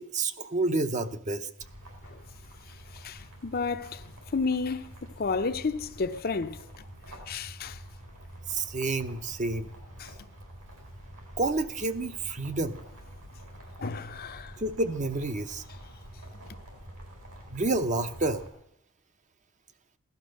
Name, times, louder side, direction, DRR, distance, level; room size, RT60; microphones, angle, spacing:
voice 1, 0.0-1.5 8.5-9.7 11.4-12.8 14.6-15.6 17.5-18.4, right 2 dB, 35° right, 0.8 m, -29 dB
sound 1, 1.6-18.5, right 1 dB, 75° right, 4.3 m, -47 dB
voice 2, 2.9-4.0 4.3-6.6 7.1-7.8 10.0-10.1 13.8-14.6, left 4 dB, 45° left, 0.6 m, -32 dB
16.5 x 12.0 x 6.4 m
head